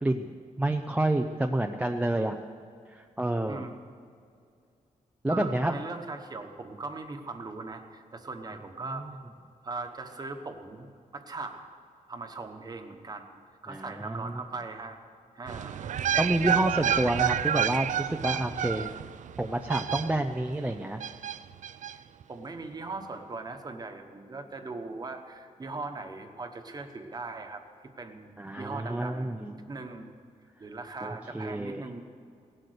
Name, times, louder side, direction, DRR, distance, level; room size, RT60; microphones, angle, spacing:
voice 1, 0.0-2.4 2.9-3.6 5.2-5.8 8.9-9.1 13.7-14.4 16.2-18.9 19.4-21.0 28.4-29.5 31.0-31.8, right 1 dB, 10° right, 4 dB, 0.5 m, -29 dB
voice 2, 5.3-9.0 9.6-10.9 11.1-11.7 12.1-13.4 13.6-15.0 15.3-16.0 22.3-27.6 28.0-28.3 28.6-30.1 30.6-32.0, right 3 dB, 30° right, 5 dB, 1.2 m, -39 dB
sound 1, 15.5-20.5 21.0-21.9 22.2-22.3, right 9 dB, 65° right, 0.4 m, -29 dB
17.5 x 12.0 x 6.7 m, 2.3 s
wide cardioid pair, 175°, 14 cm